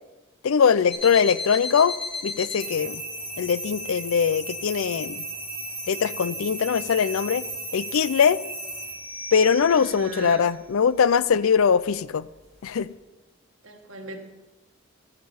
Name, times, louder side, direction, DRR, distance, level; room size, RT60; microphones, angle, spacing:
voice 1, 0.4-1.9 2.2-3.0 3.4-5.2 5.9-7.5 7.7-8.4 9.3-12.3 12.6-12.9, left 6 dB, 80° left, 18 dB, 0.4 m, -21 dB
sound 1, 0.9-12.9, equal, 30° left, 2.9 m, -36 dB
voice 2, 9.7-10.4 13.6-14.2, right 2 dB, 70° right, 3 dB, 1.6 m, -38 dB
15.0 x 5.9 x 7.1 m, 1.1 s
head